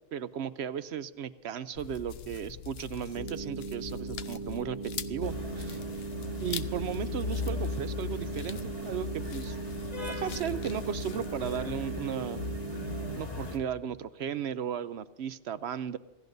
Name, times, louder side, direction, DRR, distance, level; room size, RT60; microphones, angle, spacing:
voice 1, 0.1-4.8 5.1-5.8 6.4-9.6 10.1-12.4 13.2-16.0, right 8 dB, 65° right, 14 dB, 0.8 m, -35 dB
sound 1, 1.7-11.7, left 10 dB, 60° left, 0.9 m, -43 dB
sound 2, 3.2-13.2, right 5 dB, 35° right, 1.2 m, -39 dB
sound 3, 5.2-13.6, left 3 dB, 35° left, 1.8 m, -38 dB
27.0 x 16.5 x 2.7 m, 1.2 s
omnidirectional pair, 1.2 m